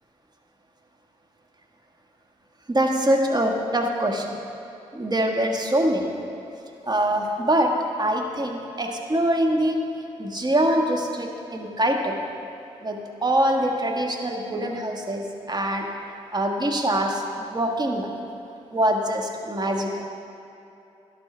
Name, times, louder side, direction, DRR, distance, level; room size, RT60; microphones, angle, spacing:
voice 1, 2.7-4.3 4.9-6.1 6.9-7.7 8.0-9.8 10.2-12.2 12.8-15.2 15.5-15.8 16.3-17.2 17.5-18.1 18.7-19.9, right 1 dB, 30° right, 2 dB, 1.5 m, -23 dB
12.5 x 11.0 x 3.4 m, 2.8 s
supercardioid pair, 45°, 14 cm